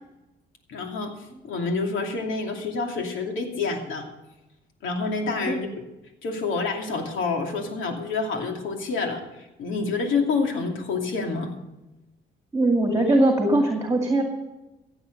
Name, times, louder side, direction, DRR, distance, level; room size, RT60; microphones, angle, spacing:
voice 1, 0.7-1.1 1.4-4.1 4.8-5.8 6.2-11.5, left 4 dB, 80° left, 3 dB, 2.7 m, -28 dB
voice 2, 12.5-14.2, right 2 dB, 15° right, 2 dB, 2.3 m, -20 dB
16.0 x 8.0 x 6.6 m, 0.99 s
cardioid pair, 90°, 20 cm